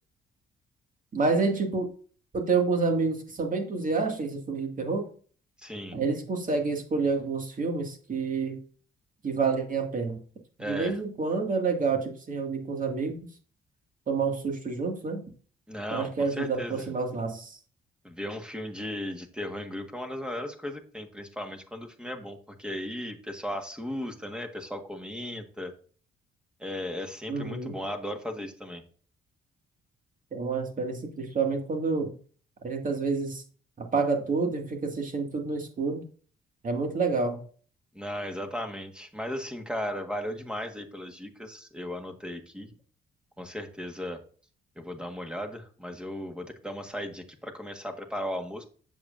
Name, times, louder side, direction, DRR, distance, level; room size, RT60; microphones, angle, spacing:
voice 1, 1.1-1.9 2.3-5.1 5.9-8.6 9.2-10.2 10.6-13.2 14.1-15.2 15.9-17.6 27.3-27.7 30.3-32.1 32.6-33.4 33.8-36.0 36.6-37.4, right 4 dB, 40° right, 4 dB, 2.1 m, -28 dB
voice 2, 5.6-6.0 10.6-11.0 15.7-16.8 18.0-25.7 26.6-28.8 37.9-42.7 43.4-44.2 44.8-48.6, left 1 dB, 5° right, 5 dB, 1.5 m, -36 dB
7.7 x 7.2 x 2.6 m, 0.42 s
cardioid pair, 90°, 20 cm